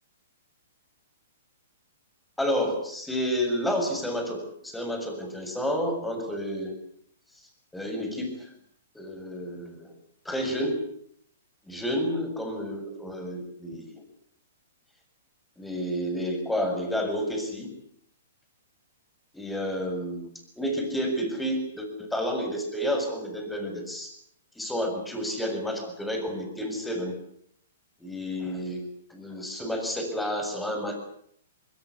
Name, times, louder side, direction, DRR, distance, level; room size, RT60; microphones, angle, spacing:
voice 1, 2.4-6.7 7.7-8.5 8.9-9.9 10.3-10.8 11.7-14.0 15.6-17.7 19.3-20.3 20.6-24.1 24.6-27.1 28.0-28.8 29.1-31.0, equal, 5° left, 4 dB, 7.2 m, -30 dB
23.0 x 21.0 x 8.6 m, 0.67 s
hypercardioid pair, 120°, 0 cm